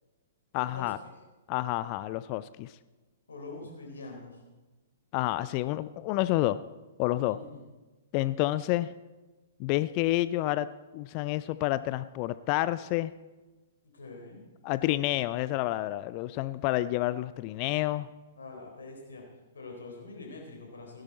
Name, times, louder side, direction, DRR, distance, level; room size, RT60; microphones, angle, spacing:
voice 1, 0.5-1.0 1.5-2.7 5.1-6.6 7.0-7.4 8.1-8.9 9.6-10.7 10.9-13.1 14.6-18.1, left 16 dB, 35° left, 16 dB, 0.3 m, -29 dB
voice 2, 3.3-4.4 7.3-7.7 13.9-14.4 18.4-19.2 19.5-21.0, left 3 dB, 65° left, 1 dB, 4.0 m, -44 dB
16.5 x 11.5 x 4.2 m, 1.2 s
figure-of-eight pair, 115°, 0 cm